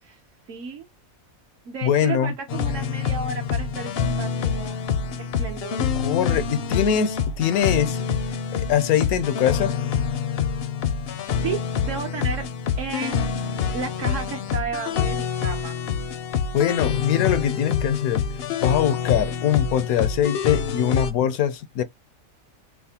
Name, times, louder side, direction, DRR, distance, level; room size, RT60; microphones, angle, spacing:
voice 1, 0.5-0.9 1.7-4.8 5.2-5.8 11.4-12.4 12.8-15.8, right 5 dB, 65° right, 1.1 m, -33 dB
voice 2, 1.8-2.3 6.0-8.1 8.5-9.7 16.5-18.2 18.6-21.8, left 9 dB, 90° left, 1.1 m, -22 dB
sound 1, 2.5-21.1, left 6 dB, 65° left, 0.6 m, -26 dB
5.7 x 2.1 x 2.8 m
omnidirectional pair, 1.5 m